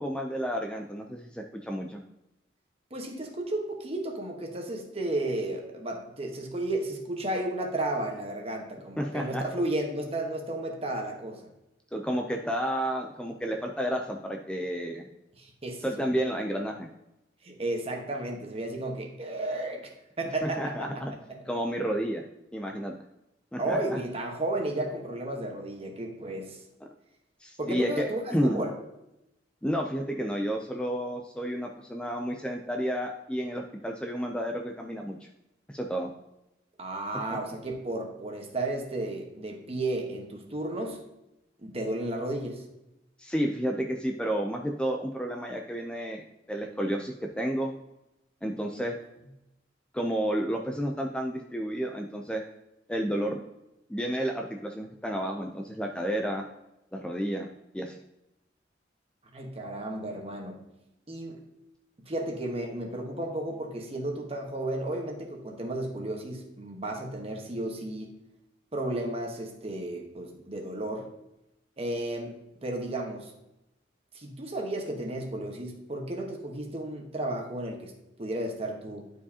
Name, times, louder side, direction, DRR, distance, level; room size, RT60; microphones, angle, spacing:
voice 1, 0.0-2.0 9.0-9.4 11.9-15.1 15.8-16.9 20.4-21.1 21.5-22.2 22.5-22.9 23.5-24.0 27.4-28.6 29.6-35.3 35.7-36.1 37.3-37.4 43.2-47.7 48.4-48.9 49.9-52.4 52.9-53.4 53.9-56.4 56.9-57.5 57.7-58.0, equal, 5° left, 2 dB, 0.4 m, -31 dB
voice 2, 2.9-11.5 15.4-16.0 17.4-19.9 20.2-21.4 23.6-26.6 27.6-28.7 36.8-41.0 41.6-42.7 59.3-60.6 61.1-61.4 62.0-68.2 68.7-71.1 71.8-72.3 72.6-73.3 74.1-79.1, right 1 dB, 35° right, 2 dB, 1.2 m, -33 dB
11.0 x 4.8 x 2.8 m, 0.88 s
head